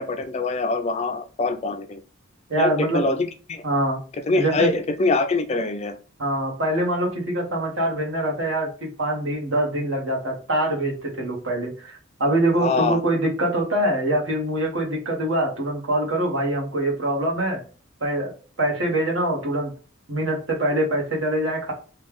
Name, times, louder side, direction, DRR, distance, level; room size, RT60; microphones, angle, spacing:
voice 1, 0.0-2.0 2.6-3.6 4.3-6.0 12.6-13.0, left 3 dB, 30° left, 8 dB, 0.3 m, -24 dB
voice 2, 2.5-3.0 3.6-4.0 4.3-4.7 6.2-17.6 18.0-18.3 18.6-19.7 20.1-21.7, right 1 dB, 65° right, -1 dB, 1.3 m, -24 dB
3.1 x 2.3 x 3.4 m, 0.37 s
head